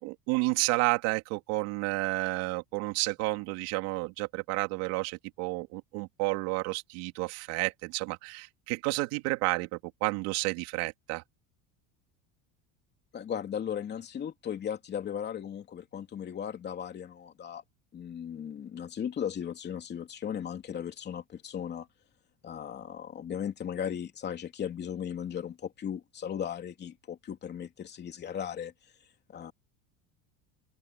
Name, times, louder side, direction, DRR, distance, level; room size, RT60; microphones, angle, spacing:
voice 1, 0.0-9.7 10.0-11.2, right 23 dB, 70° right, 3.2 m, -31 dB
voice 2, 13.1-17.6 17.9-21.9 22.4-28.7 29.3-29.5, left 8 dB, 25° left, 3.0 m, -37 dB
cardioid pair, 160°, 37 cm